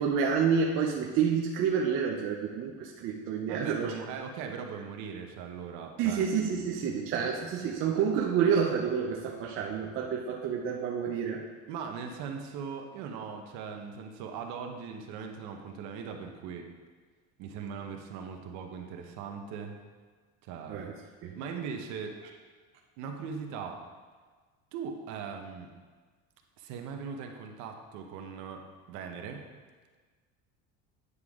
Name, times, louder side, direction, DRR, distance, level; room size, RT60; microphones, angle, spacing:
voice 1, 0.0-3.9 6.0-11.4 20.7-20.9 21.2-21.4, right 6 dB, 40° right, -1 dB, 0.6 m, -29 dB
voice 2, 3.5-7.4 7.7-7.8 11.7-16.7 17.4-19.8 20.4-20.8 21.3-22.2 23.0-23.8 24.7-25.7 26.6-29.4, right 6 dB, 55° right, 4 dB, 1.0 m, -40 dB
9.6 x 6.6 x 3.6 m, 1.4 s
cardioid pair, 180°, 33 cm